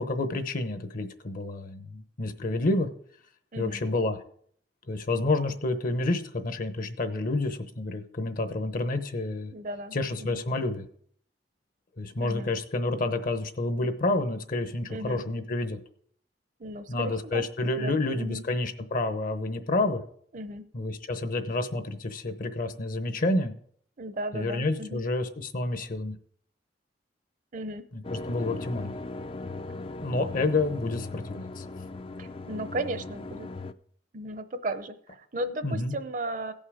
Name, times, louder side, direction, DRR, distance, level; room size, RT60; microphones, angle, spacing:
voice 1, 0.0-2.9 3.6-4.2 4.9-9.5 9.9-10.9 12.0-15.8 16.9-20.0 20.7-23.5 24.3-26.2 27.9-29.0 30.0-31.6 35.6-35.9, left 2 dB, 50° left, 9 dB, 0.9 m, -29 dB
voice 2, 9.5-10.4 12.2-12.5 14.9-15.2 16.6-17.5 17.8-18.5 20.3-20.6 24.0-25.0 27.5-27.8 32.2-33.5 34.1-36.5, right 1 dB, 50° right, 11 dB, 0.7 m, -35 dB
sound 1, 28.0-33.7, left 3 dB, 30° left, 0.4 m, -38 dB
16.5 x 5.6 x 4.9 m, 0.62 s
head